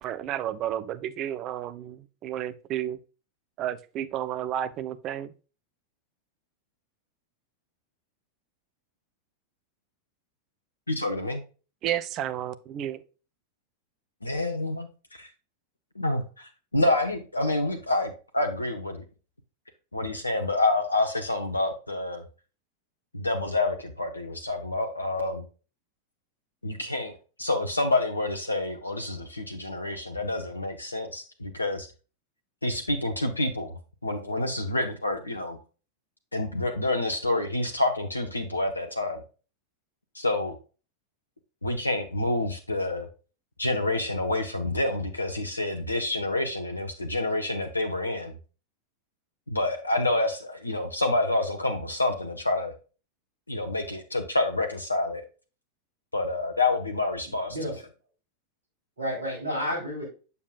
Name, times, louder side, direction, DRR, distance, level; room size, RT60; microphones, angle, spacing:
voice 1, 0.0-3.0 3.6-5.3 11.8-13.0, right 11 dB, 35° right, 0.6 m, -32 dB
voice 2, 10.9-11.4 14.2-15.3 16.0-19.0 19.9-22.2 23.1-25.4 26.6-31.9 32.6-35.6 36.3-39.2 40.1-40.6 41.6-43.1 43.6-48.3 49.5-52.7 53.5-55.2 56.1-57.5, left 2 dB, 80° left, 0.8 m, -28 dB
voice 3, 57.2-57.8 59.0-60.1, equal, 75° right, 3.7 m, -31 dB
7.2 x 6.9 x 2.4 m
figure-of-eight pair, 90°, 0 cm